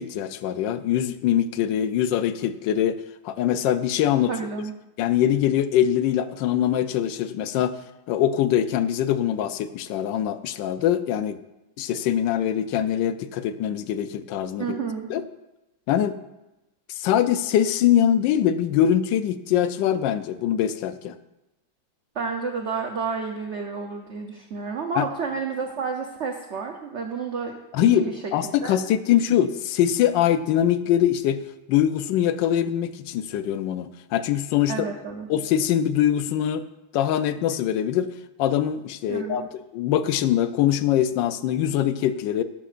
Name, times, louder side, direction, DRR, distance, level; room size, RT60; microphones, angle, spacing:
voice 1, 0.0-3.0 3.2-4.3 5.0-7.7 8.1-11.4 11.8-14.8 15.1-15.2 15.9-16.2 17.0-21.1 25.0-25.1 27.7-31.4 31.7-34.7 35.3-36.6 36.9-38.1 38.4-39.4 39.7-42.4, left 10 dB, 75° left, 12 dB, 1.2 m, -23 dB
voice 2, 4.3-4.7 14.6-15.1 22.1-28.3 28.6-28.8 34.7-35.3 39.1-39.5, right 5 dB, 60° right, 3 dB, 0.7 m, -30 dB
11.5 x 11.0 x 2.5 m, 0.96 s
omnidirectional pair, 2.1 m